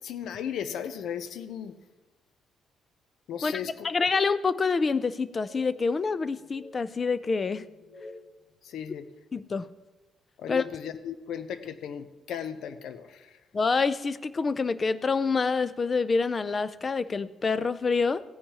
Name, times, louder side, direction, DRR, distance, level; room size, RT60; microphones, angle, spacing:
voice 1, 0.0-1.7 3.3-3.9 8.6-9.1 10.4-13.4, left 8 dB, 70° left, 11 dB, 0.6 m, -36 dB
voice 2, 3.8-7.6 9.3-9.7 10.5-10.6 13.5-18.2, left 4 dB, 25° left, 15 dB, 0.4 m, -27 dB
sound 1, 5.4-5.7 6.3-6.8 7.6-8.3, left 2 dB, 85° left, 1.4 m, -49 dB
16.5 x 10.0 x 2.9 m, 1.2 s
cardioid pair, 155°, 0 cm